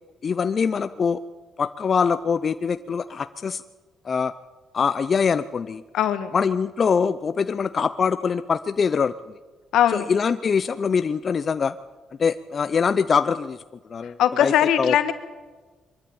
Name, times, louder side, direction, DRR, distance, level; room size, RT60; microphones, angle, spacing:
voice 1, 0.2-1.2 1.6-3.6 4.1-4.3 4.7-5.8 6.3-9.1 9.9-11.7 12.2-13.6 13.9-14.5 14.8-14.9, left 6 dB, 45° left, 12 dB, 0.6 m, -23 dB
voice 2, 5.9-6.3 9.7-10.1 14.2-15.1, left 10 dB, 80° left, 10 dB, 1.6 m, -20 dB
23.0 x 13.0 x 8.7 m, 1.4 s
cardioid pair, 90°, 0 cm